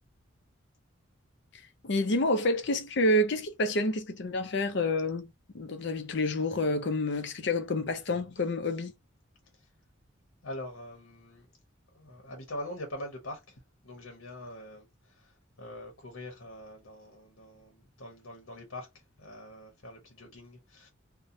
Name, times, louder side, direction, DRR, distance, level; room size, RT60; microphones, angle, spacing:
voice 1, 1.8-8.9, left 1 dB, 55° left, 0.5 m, -28 dB
voice 2, 10.4-11.5 11.9-20.9, left 1 dB, 80° left, 0.9 m, -44 dB
2.8 x 2.1 x 2.5 m
head